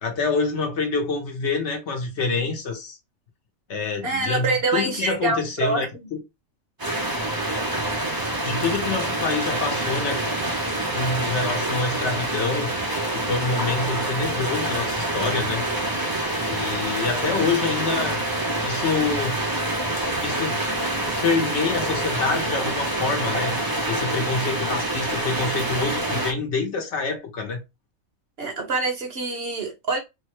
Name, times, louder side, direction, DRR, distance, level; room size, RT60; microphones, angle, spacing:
voice 1, 0.0-3.0 3.7-5.9 8.4-10.2 10.9-12.7 13.1-15.7 16.5-18.2 18.6-19.4 20.2-20.6 21.2-23.6 23.9-27.6, left 4 dB, 60° left, 1.0 m, -26 dB
voice 2, 4.0-5.8 28.4-30.0, right 3 dB, 55° right, 0.9 m, -25 dB
sound 1, 6.8-26.3, right 1 dB, 35° right, 0.3 m, -26 dB
3.4 x 2.1 x 2.9 m
omnidirectional pair, 1.4 m